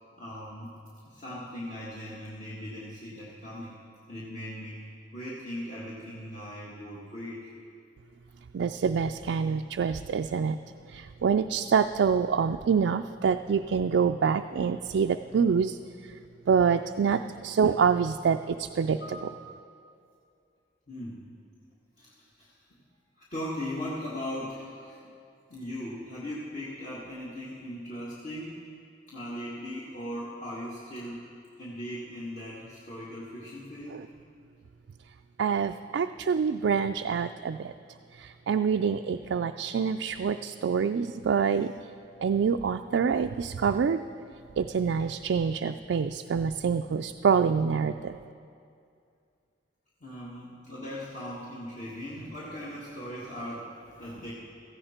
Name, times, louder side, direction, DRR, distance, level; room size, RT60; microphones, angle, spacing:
voice 1, 0.2-0.7 1.0-3.8 4.1-7.5 18.9-19.5 20.9-21.2 22.0-22.1 22.4-22.6 23.2-25.0 25.5-28.6 29.1-31.3 31.6-34.0 50.0-54.3, equal, 45° left, -7 dB, 1.7 m, -39 dB
voice 2, 8.5-10.6 10.9-15.8 16.5-19.0 33.9-34.0 35.4-37.7 38.2-41.7 42.2-44.0 44.6-48.2, right 6 dB, 75° right, 6 dB, 0.4 m, -26 dB
17.0 x 14.5 x 4.4 m, 2.4 s
head